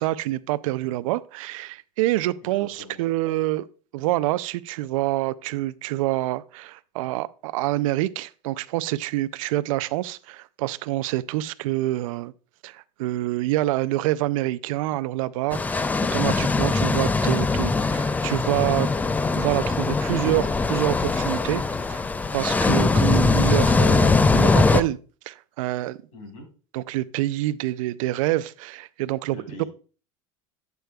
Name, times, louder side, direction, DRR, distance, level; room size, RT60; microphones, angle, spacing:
voice 1, 0.0-3.7 3.9-12.3 12.6-18.9 19.3-21.6 21.9-22.0 22.3-25.0 25.3-26.0 26.7-29.4, right 16 dB, 80° right, 0.4 m, -26 dB
voice 2, 2.4-3.0 26.1-26.5 29.3-29.7, left 2 dB, 90° left, 4.1 m, -43 dB
sound 1, 15.5-24.8, left 3 dB, 10° left, 0.3 m, -21 dB
8.2 x 7.9 x 2.3 m
supercardioid pair, 125°, 17 cm